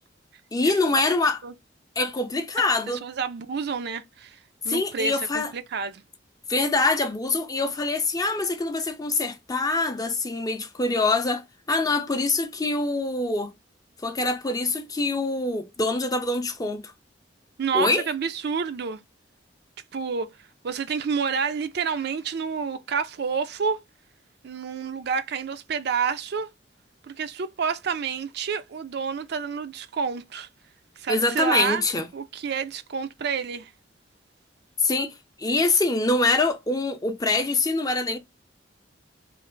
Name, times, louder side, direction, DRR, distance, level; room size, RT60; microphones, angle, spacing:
voice 1, 0.5-1.4 2.0-3.0 4.7-5.5 6.5-13.5 14.0-16.9 17.7-18.0 31.1-32.1 34.8-38.2, left 3 dB, 20° left, 0.5 m, -24 dB
voice 2, 3.0-4.4 4.6-6.0 17.6-19.0 19.9-20.4 20.6-23.8 24.4-26.5 27.1-30.5 31.0-31.8 32.1-33.7, right 6 dB, 60° right, 0.4 m, -29 dB
3.2 x 2.4 x 3.7 m
head